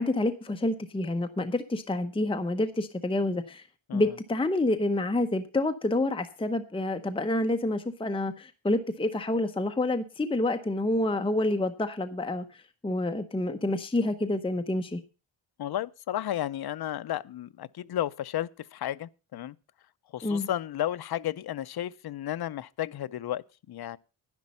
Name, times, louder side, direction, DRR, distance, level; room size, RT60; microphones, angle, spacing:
voice 1, 0.0-3.7 3.9-15.0 20.2-20.5, left 2 dB, 10° left, 0.9 m, -28 dB
voice 2, 15.6-19.6 20.1-24.0, left 12 dB, 50° left, 0.6 m, -33 dB
10.5 x 10.5 x 5.5 m
wide cardioid pair, 115°, 48 cm